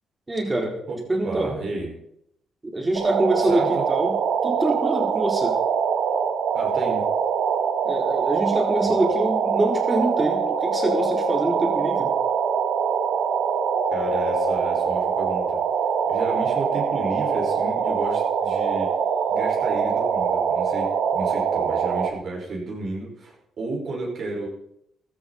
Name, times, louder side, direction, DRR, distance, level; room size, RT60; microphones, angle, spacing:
voice 1, 0.3-0.7 1.1-1.5 2.6-4.2 4.4-5.6 7.8-12.1, right 1 dB, 20° right, 1 dB, 4.2 m, -25 dB
voice 2, 0.9-1.9 3.4-3.8 6.5-7.1 8.8-9.0 13.9-15.6 16.1-19.0 19.3-24.5, right 2 dB, 55° right, -1 dB, 5.3 m, -32 dB
sound 1, 2.9-22.1, right 6 dB, 75° right, 1.5 m, -23 dB
15.5 x 13.0 x 4.3 m, 0.74 s
cardioid pair, 90°, 0 cm